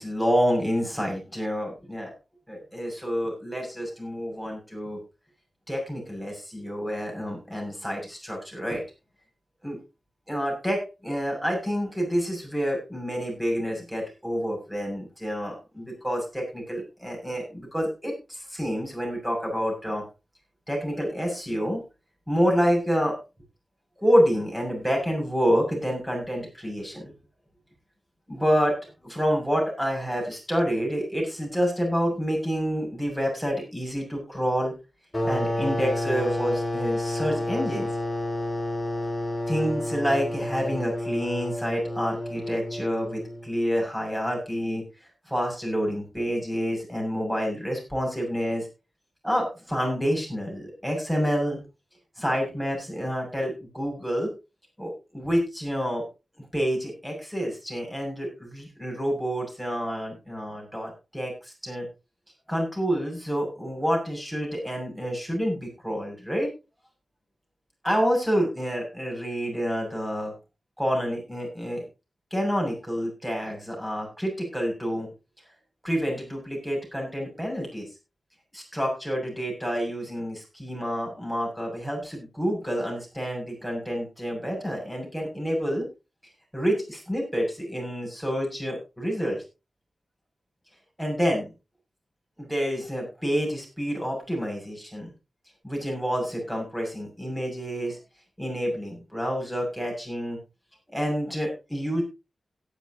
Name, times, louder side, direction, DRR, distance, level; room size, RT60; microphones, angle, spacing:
voice 1, 0.0-2.1 2.5-5.0 5.7-8.8 9.6-9.8 10.3-20.1 20.7-21.8 22.3-23.2 24.0-27.1 28.3-34.7 35.2-37.9 39.5-48.7 49.2-51.6 52.2-54.3 54.8-56.0 56.4-61.9 62.5-66.5 67.8-70.3 70.8-71.8 72.3-75.1 75.8-77.9 78.5-85.9 86.5-89.4 91.0-91.5 92.4-95.1 95.6-98.0 98.4-100.4 100.9-102.0, equal, 5° right, 0 dB, 7.1 m, -28 dB
sound 1, 35.1-43.5, left 1 dB, 15° left, 5.2 m, -30 dB
17.0 x 10.5 x 3.0 m, 0.29 s
wide cardioid pair, 125°, 0 cm